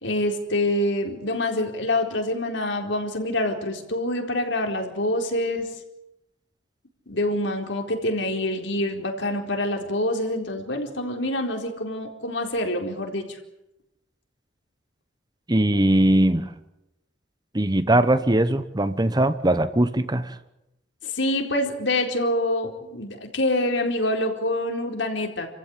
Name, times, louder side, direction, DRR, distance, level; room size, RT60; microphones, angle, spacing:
voice 1, 0.0-5.7 7.1-13.4 21.0-25.5, left 1 dB, 75° left, 3 dB, 4.3 m, -26 dB
voice 2, 15.5-16.5 17.5-20.4, right 1 dB, 20° right, 12 dB, 1.1 m, -20 dB
30.0 x 15.0 x 9.8 m, 0.89 s
head